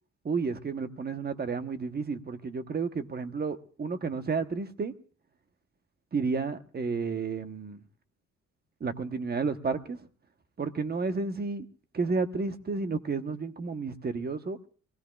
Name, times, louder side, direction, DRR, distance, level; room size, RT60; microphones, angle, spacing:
voice 1, 0.2-4.9 6.1-7.8 8.8-10.1 10.6-11.7 11.9-14.6, right 4 dB, 30° right, 1.2 m, -31 dB
23.5 x 17.0 x 2.4 m
cardioid pair, 90°, 30 cm